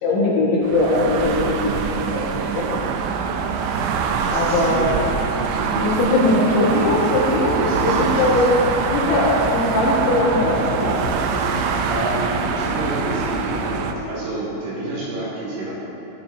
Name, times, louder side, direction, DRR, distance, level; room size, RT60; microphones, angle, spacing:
voice 1, 0.0-3.0 4.3-4.9 5.7-8.6 8.9-11.0, left 2 dB, 70° left, -6 dB, 3.6 m, -20 dB
sound 1, 0.6-13.9, right 6 dB, 85° right, 3.4 m, -24 dB
voice 2, 4.2-6.4 7.5-8.5 11.3-15.7, right 1 dB, 70° right, -7 dB, 4.6 m, -30 dB
sound 2, 6.9-14.0, left 8 dB, 85° left, 3.3 m, -34 dB
14.5 x 10.0 x 2.7 m, 3.0 s
omnidirectional pair, 5.9 m